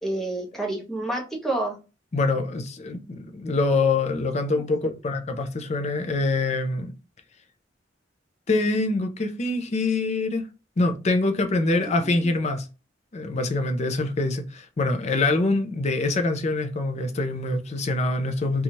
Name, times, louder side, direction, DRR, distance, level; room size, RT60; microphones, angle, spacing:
voice 1, 0.0-1.8 4.6-4.9 12.0-12.2, right 2 dB, ahead, 0.8 m, -29 dB
voice 2, 2.1-6.9 8.5-10.5 10.8-12.7 13.1-18.6, left 2 dB, 35° left, 0.5 m, -25 dB
2.7 x 2.3 x 2.9 m
head